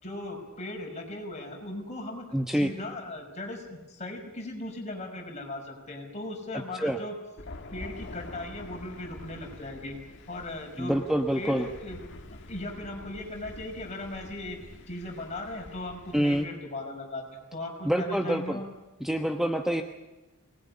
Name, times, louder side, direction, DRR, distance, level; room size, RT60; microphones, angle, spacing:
voice 1, 0.0-7.1 7.7-10.0 10.3-11.0 11.3-12.0 12.5-14.6 14.9-18.7, left 2 dB, 35° left, 2 dB, 5.6 m, -38 dB
voice 2, 2.3-2.7 6.7-7.0 10.8-11.7 16.1-16.5 17.8-18.6 19.0-19.8, equal, ahead, 4 dB, 1.0 m, -26 dB
Thunder, 7.4-16.5, left 2 dB, 55° left, 1.9 m, -46 dB
23.5 x 20.0 x 9.8 m, 1.1 s
head